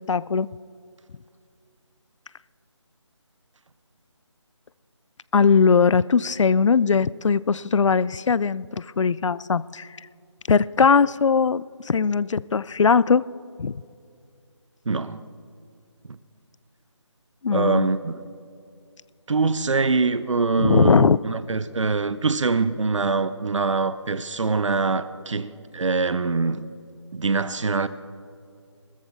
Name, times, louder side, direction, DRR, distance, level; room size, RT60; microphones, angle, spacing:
voice 1, 0.1-0.5 5.3-9.9 10.5-13.2 13.6-13.7 17.4-17.9 20.6-21.2, left 5 dB, 80° left, 0.4 m, -20 dB
voice 2, 14.9-15.2 16.1-16.2 17.5-18.1 19.3-26.7 27.1-27.9, right 4 dB, 90° right, 0.7 m, -24 dB
19.5 x 14.0 x 3.7 m
figure-of-eight pair, 175°, 15 cm